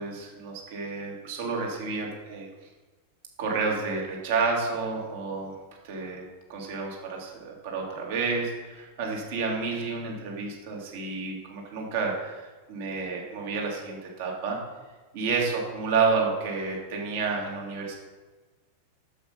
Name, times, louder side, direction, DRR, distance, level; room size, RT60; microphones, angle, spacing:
voice 1, 0.0-2.5 3.4-5.6 5.8-14.6 15.1-17.9, right 4 dB, 55° right, -1 dB, 2.5 m, -30 dB
8.5 x 7.6 x 5.5 m, 1.3 s
figure-of-eight pair, 90°, 0 cm